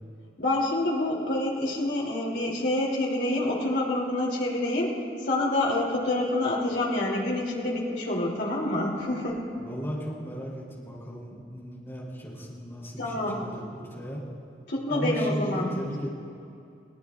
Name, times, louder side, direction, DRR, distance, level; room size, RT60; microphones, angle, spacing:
voice 1, 0.4-4.9 5.3-9.4 13.0-13.4 14.7-15.7, left 1 dB, 70° left, -3 dB, 2.9 m, -27 dB
voice 2, 9.6-14.2 14.9-16.1, equal, 15° left, -6 dB, 3.4 m, -36 dB
21.5 x 18.5 x 2.5 m, 2.5 s
head